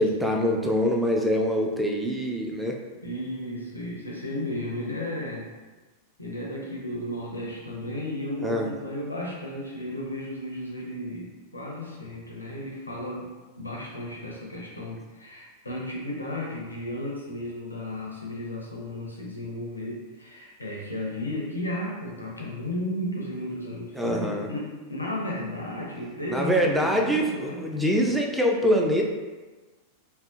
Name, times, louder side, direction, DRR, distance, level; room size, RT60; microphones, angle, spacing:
voice 1, 0.0-2.8 8.4-8.7 24.0-24.5 26.3-29.0, equal, 5° right, 1 dB, 0.3 m, -24 dB
voice 2, 3.0-5.5 6.2-13.3 13.6-27.8, left 1 dB, 80° left, -2 dB, 0.5 m, -34 dB
2.5 x 2.0 x 2.4 m, 1.2 s
figure-of-eight pair, 90°, 0 cm